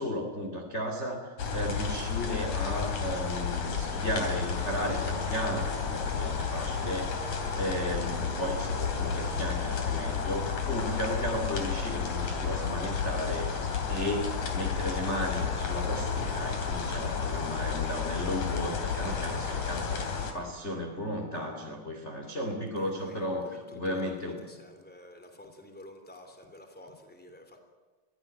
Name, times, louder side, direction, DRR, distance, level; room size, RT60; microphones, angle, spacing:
voice 1, 0.0-7.1 7.5-13.5 13.9-20.0 20.3-24.5, equal, 20° left, 2 dB, 2.2 m, -34 dB
sound 1, 1.4-20.3, left 6 dB, 55° left, 4.0 m, -32 dB
voice 2, 24.6-27.6, left 1 dB, 5° left, 6 dB, 2.6 m, -50 dB
22.5 x 16.5 x 9.1 m, 1.4 s
omnidirectional pair, 4.0 m